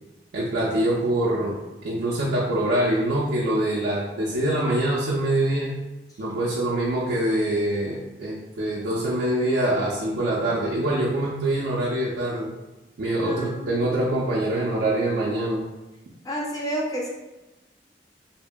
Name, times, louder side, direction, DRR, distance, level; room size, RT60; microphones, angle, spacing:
voice 1, 0.3-1.6 1.8-5.8 6.2-12.5 13.0-15.7, right 1 dB, 80° right, -6 dB, 0.4 m, -24 dB
voice 2, 13.2-14.1 16.2-17.1, equal, 20° left, -2 dB, 0.4 m, -31 dB
2.8 x 2.5 x 2.2 m, 1.0 s
head